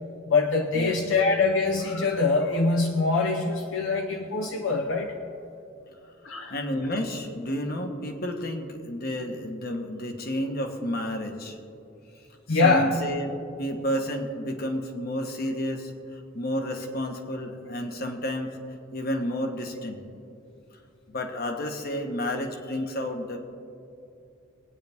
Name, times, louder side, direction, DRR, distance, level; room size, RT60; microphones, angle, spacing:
voice 1, 0.3-5.1 6.2-6.6 12.5-12.9, left 3 dB, 70° left, 3 dB, 0.8 m, -24 dB
voice 2, 6.5-11.6 12.5-18.6 18.9-20.0 21.1-23.4, equal, 50° left, 4 dB, 1.3 m, -31 dB
22.0 x 9.4 x 3.6 m, 2.7 s
head